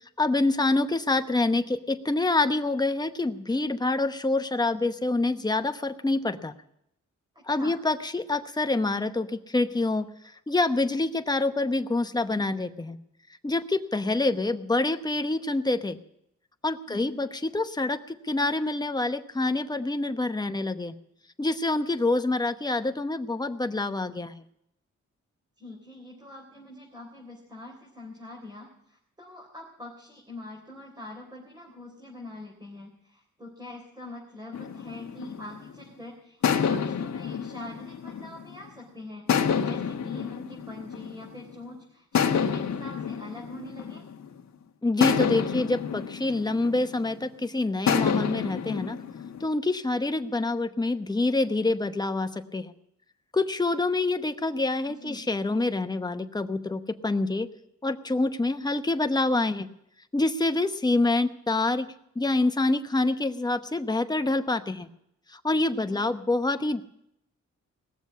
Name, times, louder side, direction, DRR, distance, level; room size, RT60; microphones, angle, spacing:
voice 1, 0.2-6.5 7.5-10.1 10.5-13.0 13.4-16.0 16.6-20.9 21.4-24.4 44.8-49.0 49.4-52.7 53.3-57.5 57.8-59.7 60.1-64.9 65.3-66.8, left 2 dB, 15° left, 8 dB, 0.9 m, -26 dB
voice 2, 7.4-7.7 16.9-17.2 25.6-44.1 54.9-55.2 65.7-66.0, left 2 dB, 15° right, -1 dB, 3.6 m, -44 dB
sound 1, 34.5-35.8 36.4-38.7 39.3-41.5 42.1-44.4 45.0-47.3 47.9-49.4, left 7 dB, 70° left, 1.4 m, -28 dB
19.0 x 7.2 x 9.4 m, 0.77 s
cardioid pair, 105°, 29 cm